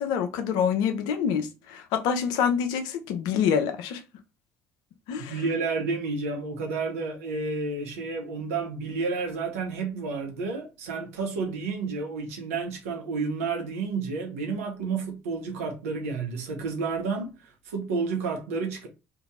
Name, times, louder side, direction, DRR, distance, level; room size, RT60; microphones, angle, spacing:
voice 1, 0.0-4.0 5.1-5.4, left 7 dB, 70° left, 0.6 m, -26 dB
voice 2, 5.3-18.9, right 4 dB, 85° right, 0.9 m, -30 dB
2.9 x 2.6 x 3.6 m
hypercardioid pair, 55°, 7 cm